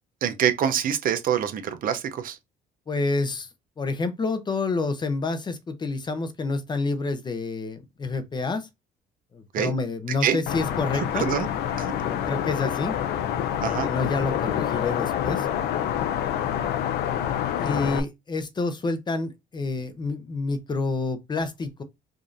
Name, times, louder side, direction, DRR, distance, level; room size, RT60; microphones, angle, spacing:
voice 1, 0.2-2.4 9.5-9.7 10.2-10.4 11.1-11.5 11.8-11.9 13.6-13.9, right 9 dB, 55° right, 0.6 m, -25 dB
voice 2, 2.9-3.5 3.8-8.7 9.3-11.3 12.0-13.0 13.8-15.5 17.6-21.8, left 3 dB, 25° left, 0.6 m, -28 dB
sound 1, 10.5-18.0, left 10 dB, 75° left, 0.5 m, -27 dB
5.0 x 2.5 x 2.5 m
cardioid pair, 110°, 17 cm